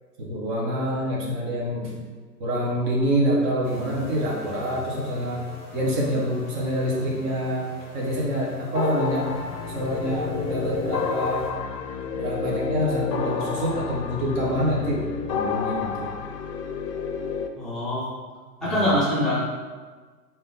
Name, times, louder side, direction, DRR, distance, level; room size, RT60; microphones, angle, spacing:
voice 1, 0.2-2.1 2.4-5.4 5.7-7.7 7.9-9.3 9.7-11.5 12.1-16.1 18.6-19.0, equal, 30° right, -4 dB, 1.0 m, -26 dB
sound 1, 3.6-11.5, left 1 dB, 20° left, 1.2 m, -43 dB
sound 2, 8.7-17.5, left 6 dB, 75° left, 0.6 m, -29 dB
voice 2, 17.6-18.1 18.6-19.4, equal, ahead, -13 dB, 0.6 m, -24 dB
3.6 x 2.8 x 3.8 m, 1.4 s
figure-of-eight pair, 115°, 49 cm